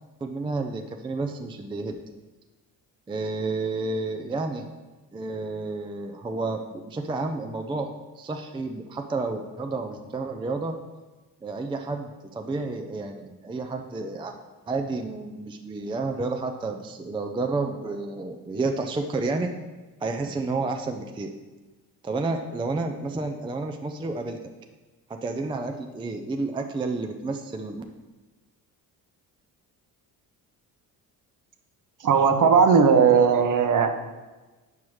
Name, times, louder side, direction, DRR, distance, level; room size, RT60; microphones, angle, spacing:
voice 1, 0.2-2.0 3.1-4.7 5.1-10.8 11.4-14.3 14.7-19.5 20.0-21.3 22.0-24.4 25.2-27.8, right 3 dB, 10° right, 5 dB, 0.4 m, -30 dB
voice 2, 32.0-33.9, right 6 dB, 45° right, 6 dB, 0.8 m, -18 dB
7.2 x 4.6 x 3.1 m, 1.2 s
supercardioid pair, 65°, 42 cm